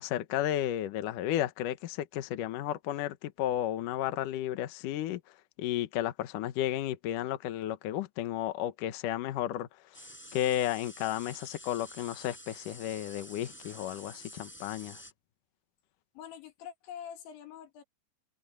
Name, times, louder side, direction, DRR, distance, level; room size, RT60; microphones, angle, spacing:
voice 1, 0.0-5.2 5.6-9.7 10.3-15.0, left 12 dB, 65° left, 2.1 m, -33 dB
sound 1, 9.9-15.1, equal, ahead, 4.8 m, -49 dB
voice 2, 16.1-17.8, left 8 dB, 90° left, 4.6 m, -45 dB
omnidirectional pair, 5.1 m